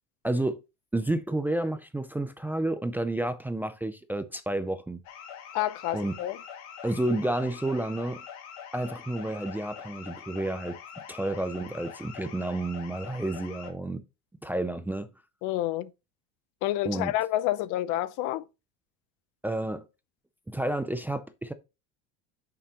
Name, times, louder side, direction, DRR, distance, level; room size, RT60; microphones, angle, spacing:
voice 1, 0.2-0.6 0.9-5.0 5.9-6.1 6.8-8.2 8.7-10.8 11.1-14.0 14.4-15.1 16.8-17.1 19.4-19.9 20.5-21.5, right 1 dB, 5° right, 0.4 m, -30 dB
sound 1, 5.0-13.7, left 8 dB, 75° left, 2.3 m, -44 dB
voice 2, 5.5-6.4 15.4-15.9 16.6-18.4, left 14 dB, 60° left, 0.7 m, -29 dB
9.0 x 6.8 x 2.9 m
cardioid pair, 140°, 34 cm